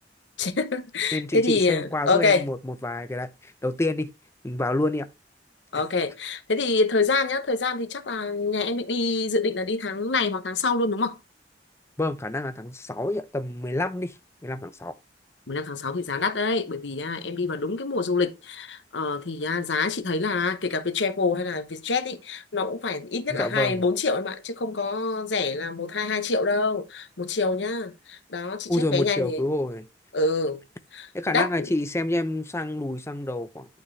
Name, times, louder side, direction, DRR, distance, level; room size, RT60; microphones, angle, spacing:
voice 1, 0.4-2.5 5.7-11.1 15.5-29.4 30.1-30.6 30.9-31.7, left 3 dB, 90° left, 1.0 m, -26 dB
voice 2, 1.1-4.1 4.4-5.1 12.0-14.1 14.4-14.9 23.3-23.8 28.7-29.8 31.1-33.7, left 1 dB, 15° left, 0.6 m, -28 dB
11.5 x 4.4 x 3.2 m
head